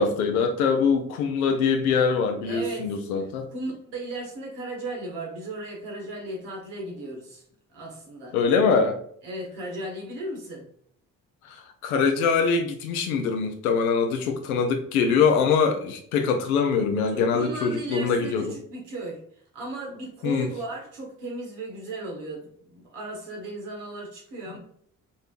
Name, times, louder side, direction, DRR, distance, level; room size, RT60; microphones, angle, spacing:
voice 1, 0.0-3.5 8.3-9.0 11.5-18.6 20.2-20.5, left 5 dB, 90° left, 5 dB, 0.7 m, -23 dB
voice 2, 2.4-2.9 3.2-7.4 7.7-8.4 9.2-10.7 17.1-19.2 19.5-24.6, right 2 dB, 75° right, -1 dB, 1.6 m, -36 dB
5.4 x 3.1 x 2.5 m, 0.62 s
hypercardioid pair, 40°, 42 cm